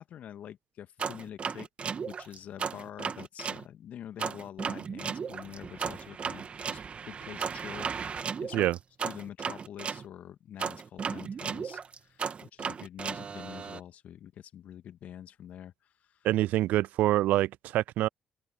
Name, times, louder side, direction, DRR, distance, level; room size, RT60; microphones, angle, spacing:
voice 1, 0.0-1.7 2.0-8.7 9.0-16.3, left 10 dB, 60° left, 2.1 m, -46 dB
sound 1, 1.0-3.6 4.2-10.0 10.6-13.8, right 6 dB, 45° right, 2.6 m, -35 dB
voice 2, 16.2-18.1, right 15 dB, 65° right, 0.3 m, -26 dB
open air
hypercardioid pair, 45°, 3 cm